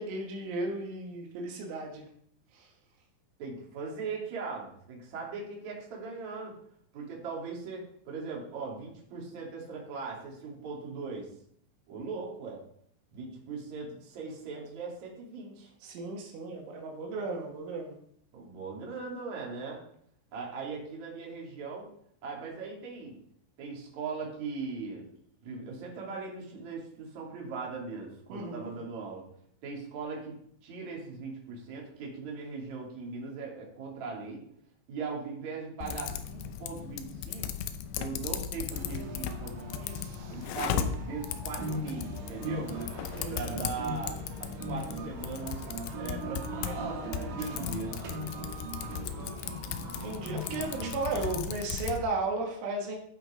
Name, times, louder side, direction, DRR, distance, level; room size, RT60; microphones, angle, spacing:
voice 1, 0.0-2.1 2.5-2.7 15.8-17.9 28.3-28.7 43.2-43.6 50.0-53.0, right 2 dB, 80° right, 0 dB, 4.1 m, -35 dB
voice 2, 3.4-6.5 6.9-11.3 11.9-12.6 13.1-15.7 18.3-19.8 20.3-21.9 22.2-23.2 23.6-25.1 25.4-29.2 29.6-30.3 30.6-34.4 34.9-37.5 38.0-40.0 40.3-42.7 43.3-45.7 46.0-48.0 50.5-50.9, right 4 dB, 45° right, -3 dB, 3.5 m, -39 dB
Typing, 35.8-52.0, left 8 dB, 80° left, 2.8 m, -37 dB
sound 1, 38.7-51.4, right 1 dB, 65° right, 3.4 m, -40 dB
14.5 x 5.1 x 5.1 m, 0.66 s
omnidirectional pair, 5.5 m